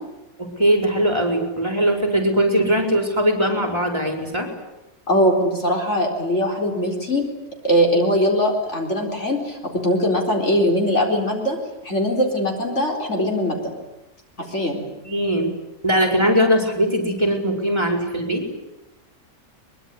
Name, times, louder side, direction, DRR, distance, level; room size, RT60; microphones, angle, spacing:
voice 1, 0.4-4.5 15.0-15.5 15.8-18.4, equal, 15° right, 3 dB, 4.7 m, -20 dB
voice 2, 5.1-7.2 7.6-11.6 11.8-13.6 14.5-14.8, equal, 45° left, 1 dB, 4.6 m, -21 dB
23.5 x 22.0 x 9.7 m, 0.95 s
omnidirectional pair, 1.6 m